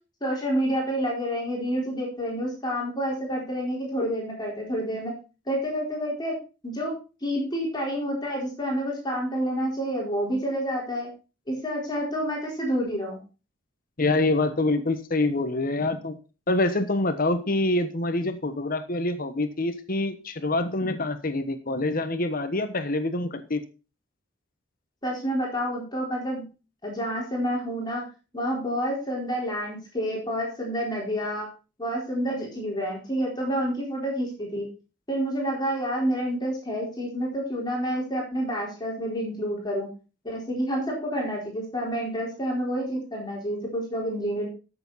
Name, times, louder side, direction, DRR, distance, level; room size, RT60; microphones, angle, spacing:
voice 1, 0.2-5.1 5.5-6.3 6.6-6.9 7.2-11.1 11.5-13.2 20.8-21.0 25.0-26.4 26.8-28.1 28.3-31.5 31.8-34.7 35.1-39.9 40.2-44.5, equal, 25° left, -2 dB, 4.3 m, -28 dB
voice 2, 14.0-16.2 16.5-23.6, left 2 dB, 50° left, 9 dB, 1.2 m, -26 dB
14.0 x 7.2 x 4.1 m, 0.33 s
head